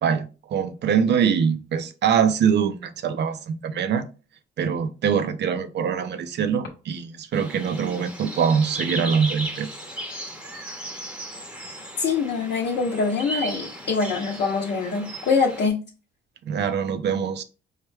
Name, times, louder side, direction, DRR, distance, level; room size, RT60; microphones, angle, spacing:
voice 1, 0.0-4.1 4.6-9.7 16.4-17.4, right 7 dB, 60° right, 0.6 m, -23 dB
sound 1, 7.3-15.7, right 1 dB, 5° right, 0.8 m, -36 dB
voice 2, 12.0-15.8, left 5 dB, 60° left, 0.7 m, -24 dB
4.7 x 2.1 x 3.2 m
cardioid pair, 90°, 20 cm